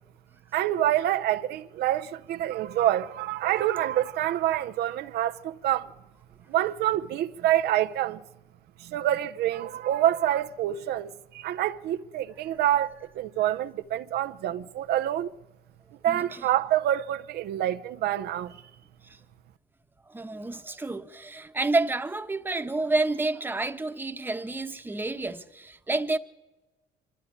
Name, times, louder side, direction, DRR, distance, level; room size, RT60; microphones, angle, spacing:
voice 1, 0.5-5.9 6.5-8.2 8.8-15.3 16.0-18.6, right 12 dB, 75° right, 0.7 m, -27 dB
voice 2, 16.1-16.4 20.1-26.2, right 2 dB, 10° right, 1.1 m, -29 dB
24.5 x 13.0 x 9.9 m
cardioid pair, 110°, 17 cm